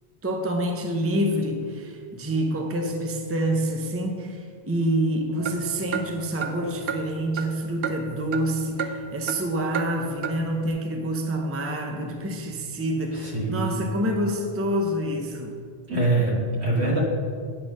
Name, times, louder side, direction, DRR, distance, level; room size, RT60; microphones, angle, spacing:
voice 1, 0.2-15.5, right 1 dB, 15° right, 3 dB, 0.6 m, -27 dB
sound 1, 5.4-8.5 8.8-9.4 9.7-9.9 10.2-10.4, right 6 dB, 65° right, 0.8 m, -32 dB
voice 2, 13.1-13.8 15.9-17.0, right 2 dB, 85° right, -4 dB, 2.2 m, -24 dB
10.0 x 3.8 x 6.4 m, 2.1 s
omnidirectional pair, 1.1 m